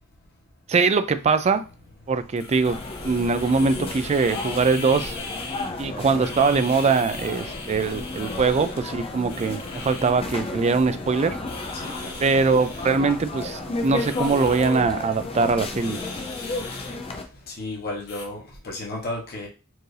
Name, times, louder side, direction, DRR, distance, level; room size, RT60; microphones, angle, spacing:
voice 1, 0.7-1.6 2.1-5.2 5.8-11.4 12.2-16.0, right 4 dB, 30° right, 0.3 m, -22 dB
sound 1, 1.1-18.2, left 4 dB, 75° left, 1.6 m, -41 dB
sound 2, 1.9-16.6, right 1 dB, 85° right, 1.5 m, -45 dB
sound 3, 2.7-17.2, left 2 dB, 25° left, 0.5 m, -33 dB
voice 2, 11.7-12.1 17.5-19.5, left 2 dB, 45° left, 1.1 m, -33 dB
4.5 x 2.6 x 3.2 m
head